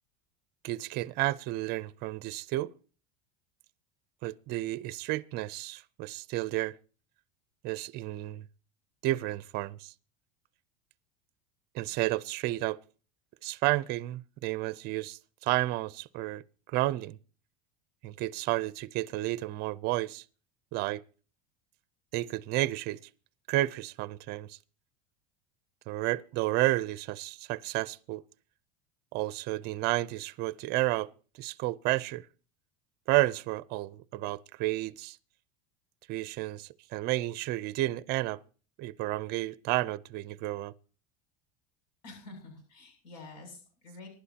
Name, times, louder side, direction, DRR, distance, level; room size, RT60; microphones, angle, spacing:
voice 1, 0.6-2.7 4.2-6.7 7.6-8.4 9.0-9.9 11.7-12.8 13.4-17.2 18.0-20.2 20.7-21.0 22.1-23.0 23.5-24.6 25.9-28.2 29.1-31.1 31.4-32.2 33.1-35.2 36.1-38.4 38.8-40.7, right 17 dB, 50° right, 0.6 m, -31 dB
voice 2, 42.0-44.1, left 3 dB, 80° left, 7.5 m, -48 dB
24.5 x 11.5 x 2.9 m
supercardioid pair, 130°, 21 cm